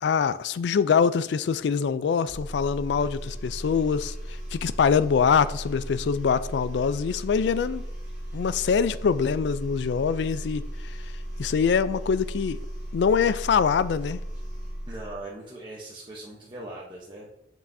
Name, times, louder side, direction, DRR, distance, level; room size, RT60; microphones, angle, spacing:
voice 1, 0.0-4.1 4.5-7.8 8.3-10.9 11.4-12.6 12.9-14.2, left 6 dB, 75° left, 0.3 m, -24 dB
sound 1, 2.2-15.2, equal, 5° right, 1.9 m, -36 dB
voice 2, 14.9-17.3, right 2 dB, 25° right, 0.9 m, -40 dB
7.4 x 5.3 x 2.7 m
head